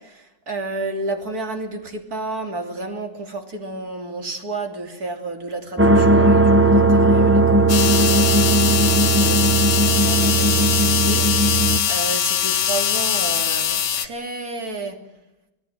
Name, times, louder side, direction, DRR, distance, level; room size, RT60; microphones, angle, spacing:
voice 1, 0.0-8.4 9.1-15.0, right 2 dB, 55° right, 4 dB, 3.5 m, -31 dB
sound 1, 5.8-11.8, right 2 dB, 10° right, 1.0 m, -17 dB
sound 2, 7.7-14.1, left 9 dB, 75° left, 1.7 m, -21 dB
26.5 x 18.0 x 7.5 m, 0.93 s
omnidirectional pair, 1.9 m